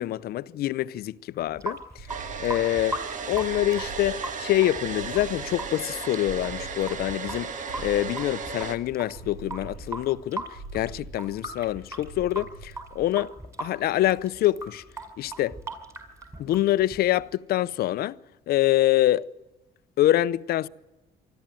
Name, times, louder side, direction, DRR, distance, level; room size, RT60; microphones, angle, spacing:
voice 1, 0.0-2.1 2.4-3.0 3.3-13.3 13.6-14.8 15.2-15.6 16.4-18.2 18.5-19.3 20.0-20.7, left 14 dB, 65° left, 0.7 m, -25 dB
Water tap faucet / Sink (filling or washing) / Drip, 1.4-17.3, right 2 dB, 15° right, 5.6 m, -39 dB
sound 1, 2.0-13.3, right 3 dB, 65° right, 6.4 m, -44 dB
Domestic sounds home sounds, 2.1-8.8, right 5 dB, 50° right, 1.8 m, -35 dB
24.5 x 13.0 x 9.0 m
cardioid pair, 110°, 17 cm